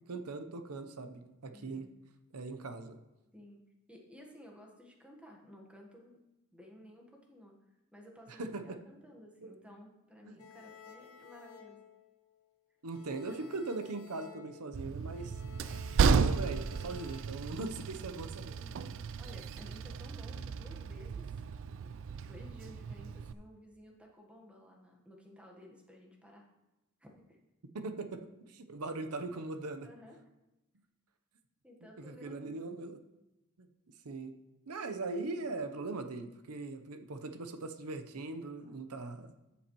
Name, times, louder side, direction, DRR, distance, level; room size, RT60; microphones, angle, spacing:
voice 1, 0.1-1.8 2.3-3.0 8.3-8.8 9.4-9.5 10.2-10.4 12.8-15.4 16.1-18.6 27.7-29.9 32.0-33.0 33.6-33.7 34.0-34.3 34.7-39.3, right 3 dB, 85° right, 8 dB, 0.8 m, -40 dB
voice 2, 1.5-1.9 3.3-6.2 6.5-7.6 7.9-11.8 13.3-13.5 18.6-18.9 19.2-21.3 22.2-26.5 27.0-27.4 29.8-30.3 31.6-32.7 38.6-38.8, equal, 5° right, 0 dB, 1.2 m, -55 dB
sound 1, 10.4-12.5 12.9-17.2, left 6 dB, 70° left, 0.9 m, -55 dB
Train, 14.7-23.3, right 5 dB, 60° right, 0.4 m, -34 dB
13.0 x 7.1 x 3.0 m, 0.96 s
head